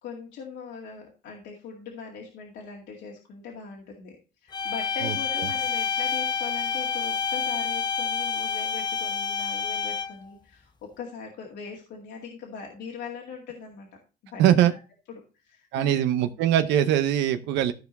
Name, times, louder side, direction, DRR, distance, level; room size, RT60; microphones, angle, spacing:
voice 1, 0.0-13.9 14.2-14.4 14.7-14.8 15.1-16.0, left 5 dB, 75° left, 0 dB, 2.2 m, -41 dB
sound 1, 4.5-10.3, left 6 dB, 25° left, 0.9 m, -28 dB
voice 2, 5.0-5.5 14.4-14.7 15.7-17.7, right 11 dB, 80° right, 9 dB, 0.8 m, -22 dB
14.0 x 4.7 x 4.1 m, 0.32 s
cardioid pair, 110°, 18 cm